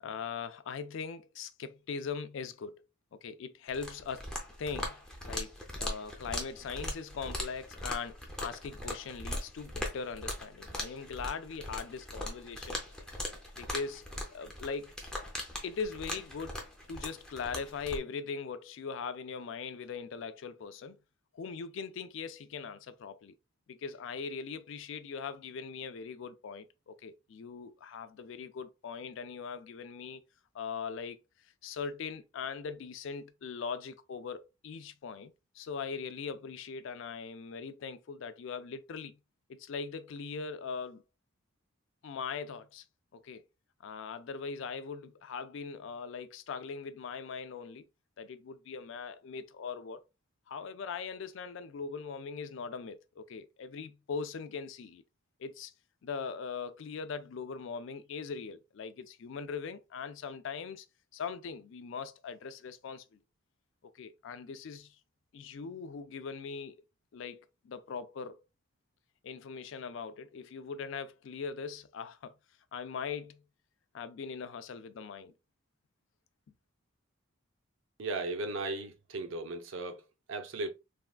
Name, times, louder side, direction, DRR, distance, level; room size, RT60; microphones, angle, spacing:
voice 1, 0.0-2.9 3.1-4.3 4.6-12.9 13.5-14.9 15.6-21.0 21.3-23.3 23.7-30.2 30.5-31.2 31.6-39.2 39.5-41.0 42.0-42.8 43.1-43.4 43.8-47.9 48.2-50.0 50.5-55.0 55.4-55.7 56.0-60.9 61.1-63.2 63.9-65.0 65.3-66.8 67.1-68.4 69.2-72.3 72.7-73.4 73.9-75.3, left 5 dB, 65° left, 0.3 m, -40 dB
sound 1, 3.7-18.0, left 1 dB, 5° left, 0.5 m, -40 dB
voice 2, 78.0-80.7, right 2 dB, 65° right, 0.5 m, -36 dB
3.4 x 2.3 x 2.3 m
head